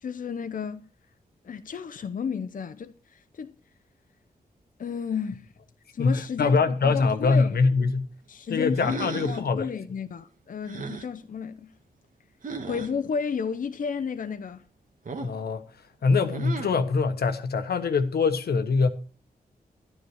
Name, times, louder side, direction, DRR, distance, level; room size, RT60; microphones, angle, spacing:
voice 1, 0.0-0.8 1.4-3.5 4.8-5.5 5.9-6.6 6.8-7.6 8.3-11.7 12.6-14.6, left 6 dB, 55° left, 0.7 m, -32 dB
voice 2, 6.0-8.1 8.5-9.7 15.2-15.6 16.0-18.9, left 4 dB, 80° left, 1.2 m, -23 dB
sound 1, 8.7-9.5 10.6-11.1 12.4-12.9 15.0-15.4 16.3-16.8, right 4 dB, 55° right, 1.5 m, -36 dB
12.0 x 9.9 x 4.8 m
cardioid pair, 80°, 16 cm